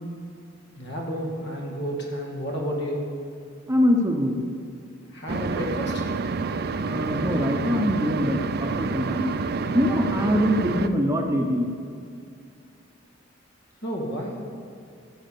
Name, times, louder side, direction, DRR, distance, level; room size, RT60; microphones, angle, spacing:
voice 1, 0.8-3.0 5.1-6.0 13.8-14.4, equal, 60° left, -1 dB, 2.3 m, -31 dB
voice 2, 3.7-4.4 6.7-9.3 9.7-11.7, equal, 15° right, 3 dB, 0.8 m, -23 dB
sound 1, 5.3-10.9, right 4 dB, 55° right, 0.5 m, -28 dB
14.0 x 7.3 x 6.7 m, 2.4 s
head